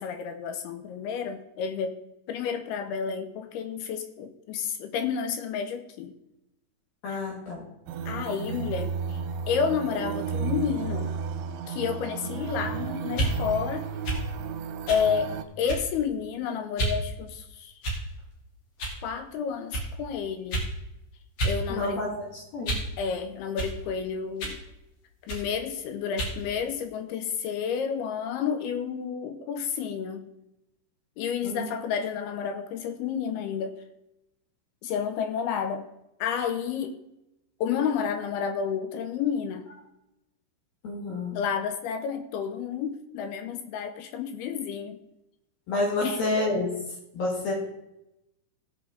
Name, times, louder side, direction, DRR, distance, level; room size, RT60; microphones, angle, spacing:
voice 1, 0.0-2.0 2.3-6.1 7.1-7.2 8.1-9.2 9.5-11.1 11.7-13.9 14.9-17.7 19.0-20.7 21.4-22.1 23.0-24.6 25.2-30.3 31.2-33.8 34.8-35.9 36.2-37.0 37.6-39.7 41.3-45.0 46.0-46.2, left 7 dB, 85° left, 7 dB, 2.3 m, -30 dB
voice 2, 7.0-7.6 21.7-22.1 22.5-22.8 31.4-31.7 40.8-41.4 45.7-46.7 47.1-47.5, left 2 dB, 60° left, -2 dB, 3.3 m, -28 dB
sound 1, 7.9-15.5, right 6 dB, 90° right, 3.1 m, -33 dB
sound 2, 13.1-13.4 14.0-14.3 14.9-15.1 15.7-16.0 16.8-17.0 17.8-18.2 18.8-19.0 19.7-19.9 20.5-20.7 21.4-21.6 21.9-22.9 23.6-23.8 24.4-24.6 25.3-25.5 26.2-26.4, right 1 dB, 45° left, 2.5 m, -30 dB
17.5 x 6.3 x 3.8 m, 0.89 s
omnidirectional pair, 5.3 m